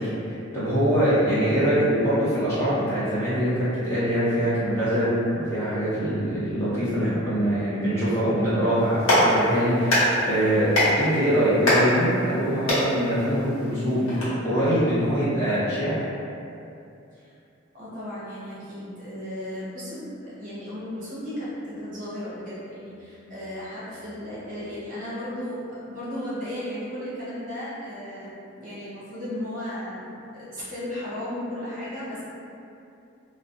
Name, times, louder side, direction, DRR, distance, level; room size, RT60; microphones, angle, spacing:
voice 1, 0.0-16.0, equal, 15° left, -13 dB, 0.6 m, -23 dB
Clapping, 8.8-14.2, equal, 85° left, 0.8 m, -24 dB
voice 2, 17.7-32.2, left 1 dB, 40° right, -11 dB, 0.8 m, -35 dB
2.4 x 2.0 x 2.6 m, 2.6 s
head